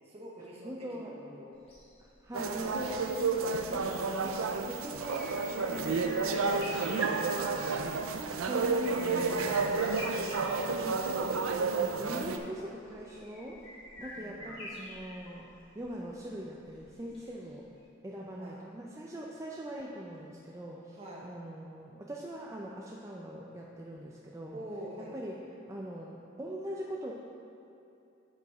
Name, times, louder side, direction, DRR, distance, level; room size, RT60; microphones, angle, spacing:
voice 1, 0.0-1.5 6.9-7.3 14.2-14.5 18.4-18.6 20.9-21.3 24.5-25.2, equal, 30° right, -4 dB, 1.0 m, -45 dB
voice 2, 0.6-1.1 2.0-13.7 14.0-15.5 15.7-17.7 18.0-24.6 25.0-27.1, equal, 15° right, -3 dB, 0.5 m, -42 dB
sound 1, 1.6-17.5 17.8-17.9, left 1 dB, 30° left, 1.7 m, -48 dB
sound 2, 2.3-12.4, right 4 dB, 80° right, 0.5 m, -31 dB
7.8 x 5.1 x 4.7 m, 2.8 s
head